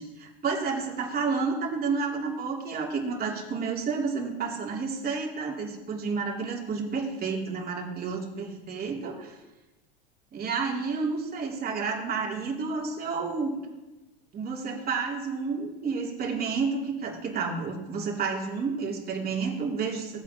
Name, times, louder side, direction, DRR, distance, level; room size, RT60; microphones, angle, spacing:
voice 1, 0.0-9.3 10.3-13.6 14.3-20.2, right 5 dB, 30° right, -2 dB, 3.0 m, -30 dB
18.0 x 8.4 x 3.0 m, 1.1 s
figure-of-eight pair, 80°, 29 cm